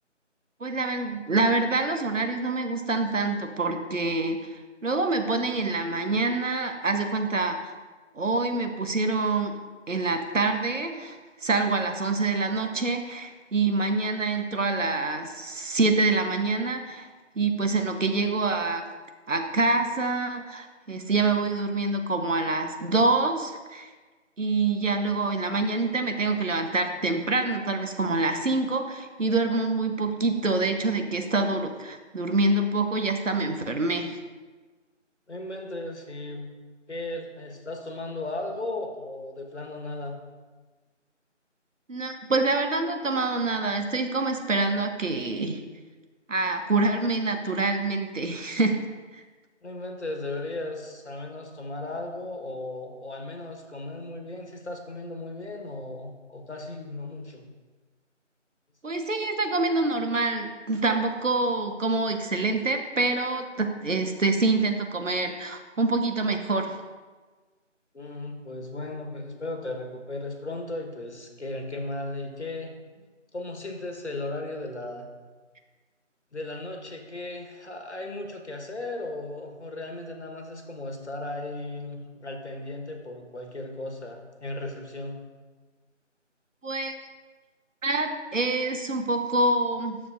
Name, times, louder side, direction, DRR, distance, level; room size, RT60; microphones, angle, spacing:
voice 1, 0.6-7.7 8.1-9.5 9.9-17.1 17.3-18.8 19.3-23.9 24.4-34.2 41.9-45.6 46.3-48.8 49.1-49.2 58.8-66.8 86.6-86.9 87.8-90.0, right 3 dB, 85° right, 6 dB, 1.0 m, -26 dB
voice 2, 35.3-36.5 36.9-40.1 49.6-57.5 67.9-72.7 73.3-75.1 76.3-85.2, left 2 dB, 65° left, 3 dB, 1.3 m, -36 dB
9.7 x 7.0 x 2.5 m, 1.4 s
figure-of-eight pair, 175°, 37 cm